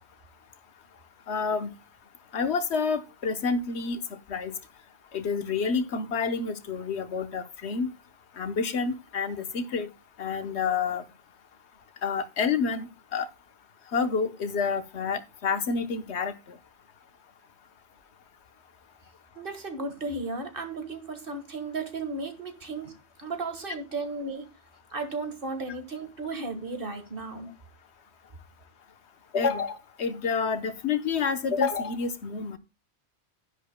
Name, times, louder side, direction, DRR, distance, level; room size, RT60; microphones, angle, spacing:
voice 1, 1.3-1.7 2.3-4.5 5.1-7.9 8.4-9.9 10.2-11.0 12.0-13.3 13.9-16.3 29.3-32.6, left 5 dB, 75° left, 1.3 m, -28 dB
voice 2, 19.4-22.9 23.2-24.5 24.9-27.5, right 3 dB, 55° right, 1.8 m, -34 dB
12.0 x 10.5 x 2.2 m
omnidirectional pair, 1.1 m